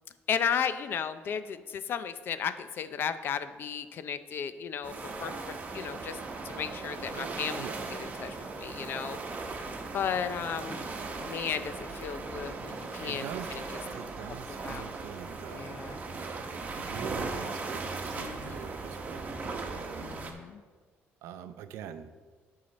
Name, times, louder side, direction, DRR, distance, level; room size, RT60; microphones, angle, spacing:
voice 1, 0.3-6.2 6.4-7.7 8.0-9.7 9.9-10.9 11.1-13.6 14.5-14.9 15.5-16.0 18.1-18.6 20.0-20.6, left 7 dB, 55° left, 12 dB, 0.5 m, -35 dB
sound 1, 4.8-20.3, right 3 dB, 35° right, 1.1 m, -38 dB
voice 2, 7.1-7.9 13.0-13.6 13.9-20.2 21.2-22.3, right 8 dB, 85° right, 10 dB, 0.5 m, -44 dB
9.5 x 5.7 x 4.0 m, 1.5 s
cardioid pair, 110°, 4 cm